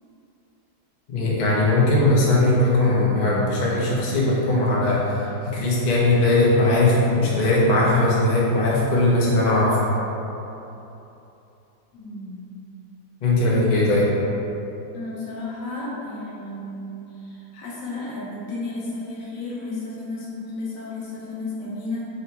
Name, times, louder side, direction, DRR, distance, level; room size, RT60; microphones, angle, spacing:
voice 1, 1.1-5.0 5.4-9.8 13.2-14.1, left 2 dB, 60° left, -6 dB, 0.4 m, -19 dB
voice 2, 11.9-12.4 13.7-14.0 14.9-22.1, left 2 dB, 90° left, -6 dB, 1.6 m, -33 dB
4.1 x 2.2 x 4.1 m, 3.0 s
omnidirectional pair, 1.8 m